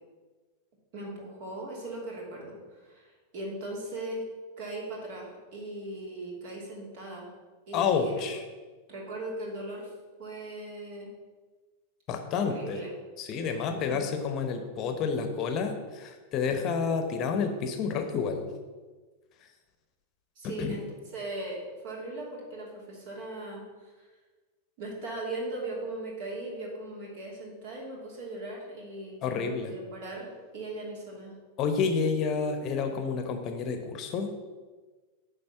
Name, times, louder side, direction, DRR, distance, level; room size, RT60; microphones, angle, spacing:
voice 1, 0.9-4.3 4.6-7.3 7.7-8.2 8.9-9.9 10.2-11.1 12.4-12.9 13.7-14.1 20.4-20.8 21.1-24.1 24.8-31.3, right 2 dB, 50° right, -2 dB, 2.8 m, -39 dB
voice 2, 7.7-8.4 12.1-12.8 13.2-18.5 19.4-19.5 20.4-20.8 29.2-29.7 31.6-34.3, left 5 dB, 35° left, 6 dB, 0.9 m, -29 dB
9.8 x 3.7 x 6.9 m, 1.3 s
figure-of-eight pair, 90°, 0 cm